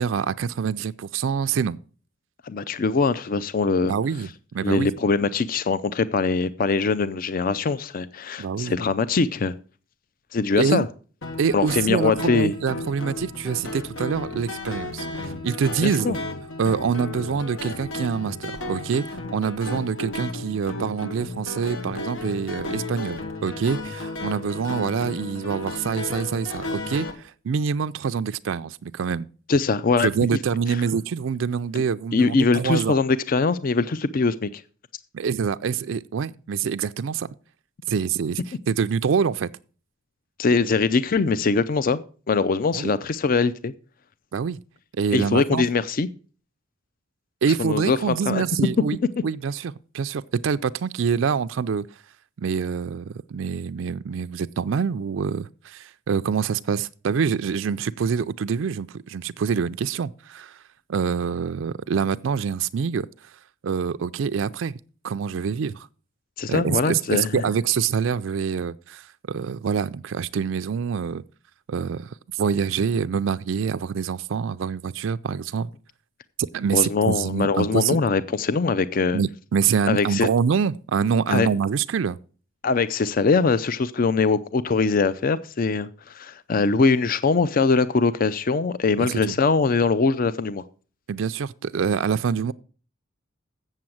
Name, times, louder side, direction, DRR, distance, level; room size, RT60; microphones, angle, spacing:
voice 1, 0.0-1.8 3.9-4.9 8.4-8.8 10.6-10.9 11.4-16.2 16.6-29.3 30.0-33.0 35.1-37.3 37.9-38.4 38.7-39.5 42.7-43.0 44.3-44.6 45.0-45.6 47.4-51.9 52.4-60.6 60.9-63.3 63.6-64.8 65.0-65.9 66.5-71.2 71.7-75.7 76.4-78.0 79.1-82.2 89.0-89.3 91.1-92.5, right 6 dB, 70° right, 0.4 m, -25 dB
voice 2, 2.4-3.9 4.6-9.5 10.3-10.9 11.5-12.5 15.8-16.2 29.5-30.4 32.1-34.6 40.4-43.7 45.1-46.1 47.6-48.4 66.4-67.4 76.7-79.2 79.9-80.3 81.3-81.5 82.6-90.6, left 4 dB, 45° left, 0.4 m, -22 dB
sound 1, 11.2-27.1, left 2 dB, 85° left, 1.8 m, -33 dB
7.7 x 7.3 x 7.7 m
head